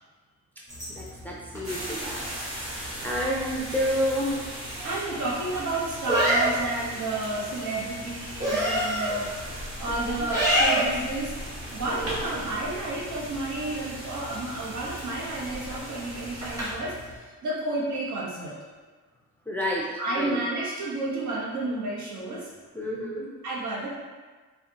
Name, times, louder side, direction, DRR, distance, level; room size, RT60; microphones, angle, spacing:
sound 1, 0.7-17.1, equal, 10° right, 1.5 m, -32 dB
voice 1, 0.9-2.2 3.0-4.3 9.9-10.2 11.8-12.1 19.5-19.9 20.2-20.4 22.7-23.3, equal, 5° left, -4 dB, 0.4 m, -29 dB
sound 2, 1.6-16.7, equal, 45° right, 1.4 m, -38 dB
voice 2, 4.8-9.3 9.8-11.3 11.7-18.5 20.0-22.5 23.4-24.0, right 2 dB, 70° right, -5 dB, 1.2 m, -31 dB
5.6 x 2.5 x 2.8 m, 1.4 s
wide cardioid pair, 170°, 30 cm